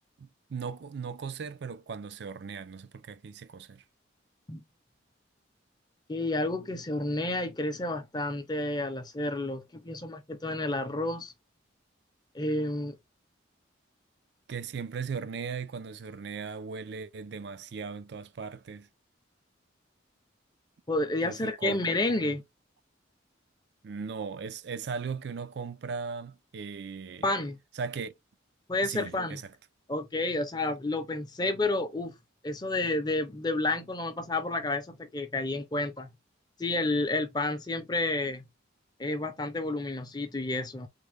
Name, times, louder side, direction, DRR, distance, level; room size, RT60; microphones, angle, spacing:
voice 1, 0.2-3.8 14.5-18.9 21.2-21.8 22.2-22.4 23.8-27.3 27.8-28.1 28.8-29.5, right 5 dB, 55° right, 0.4 m, -38 dB
voice 2, 6.1-11.3 12.3-13.0 20.9-22.4 27.2-27.6 28.7-29.4 29.9-32.1 32.4-36.1 36.6-38.4 39.0-40.9, left 2 dB, 20° left, 0.6 m, -30 dB
3.5 x 2.1 x 3.4 m
head